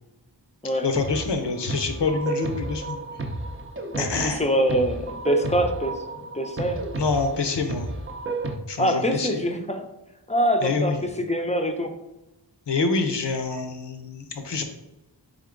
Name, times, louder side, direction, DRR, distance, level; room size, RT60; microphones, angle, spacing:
voice 1, 0.8-3.0 4.0-4.4 7.0-7.9 8.7-9.4 10.6-11.0 12.7-14.6, left 4 dB, 75° left, 5 dB, 0.7 m, -26 dB
sound 1, 0.9-8.6, right 3 dB, 30° right, 0.5 m, -32 dB
voice 2, 3.9-5.9 6.3-6.8 8.8-9.9 10.3-11.9, equal, 15° left, 4 dB, 0.5 m, -24 dB
3.7 x 3.6 x 3.7 m, 0.98 s
wide cardioid pair, 45°, 43 cm